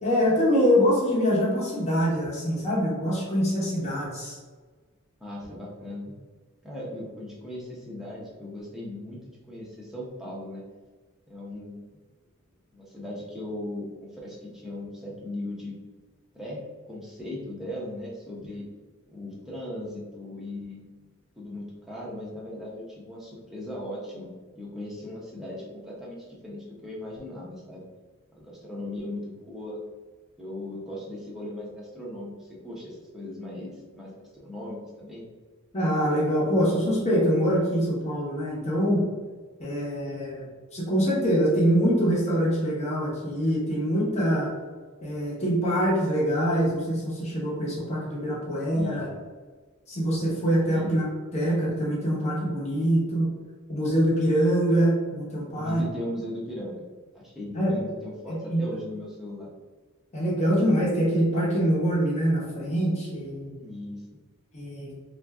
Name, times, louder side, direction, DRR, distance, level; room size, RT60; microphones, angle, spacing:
voice 1, 0.0-4.4 35.7-39.0 39.6-40.5 40.7-44.5 45.0-49.1 49.9-51.0 51.3-53.3 53.7-55.8 57.5-57.7 58.3-58.6 60.1-63.6 64.5-64.9, equal, 30° left, -6 dB, 0.9 m, -24 dB
voice 2, 5.2-6.1 6.6-10.6 11.3-11.9 12.7-15.7 16.3-16.6 16.9-18.7 19.1-20.9 21.4-24.3 24.5-27.8 28.4-29.8 30.4-35.3 48.7-49.1 50.7-50.9 55.6-56.8 57.1-59.5 63.6-64.0, left 1 dB, ahead, -6 dB, 0.7 m, -38 dB
2.5 x 2.2 x 3.4 m, 1.4 s
head